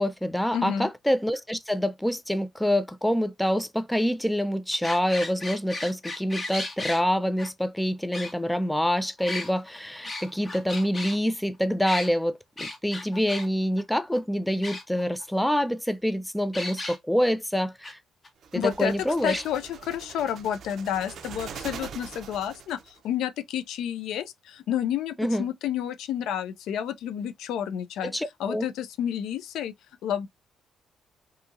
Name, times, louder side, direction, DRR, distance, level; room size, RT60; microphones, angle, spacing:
voice 1, 0.0-18.0 18.5-19.4 25.2-25.4 28.0-28.6, equal, 5° left, 0.3 m, -26 dB
voice 2, 0.5-0.9 18.5-18.9 19.2-28.1 28.4-29.7 30.0-30.3, left 10 dB, 85° left, 0.3 m, -30 dB
sound 1, 4.7-7.0 7.4-7.5 8.1-8.8 9.2-11.2 11.8-12.1 12.6-13.5 13.8-13.9 14.1-14.2 14.6-15.2 16.5-17.0 17.8-17.9 18.2-18.3 19.2-19.5, left 2 dB, 25° left, 0.9 m, -35 dB
sound 2, 18.4-23.0, right 7 dB, 65° right, 0.4 m, -42 dB
2.7 x 2.7 x 2.3 m
cardioid pair, 90°, 0 cm